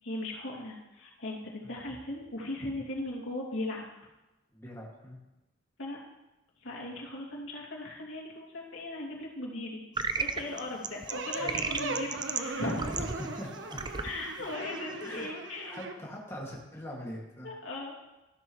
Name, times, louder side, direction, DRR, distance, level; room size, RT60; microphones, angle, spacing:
voice 1, 0.0-3.8 5.8-6.0 6.6-9.8 10.2-12.9 14.0-15.7 17.4-17.9, left 2 dB, 80° left, -3 dB, 2.6 m, -38 dB
voice 2, 4.5-5.2 11.4-12.1 12.8-13.8 15.0-15.3 15.6-17.5, equal, 15° left, -3 dB, 2.2 m, -43 dB
sound 1, 10.0-15.3, right 4 dB, 25° right, 0.5 m, -36 dB
sound 2, 11.1-15.9, right 2 dB, 70° right, 1.0 m, -39 dB
14.0 x 12.0 x 3.2 m, 1.0 s
head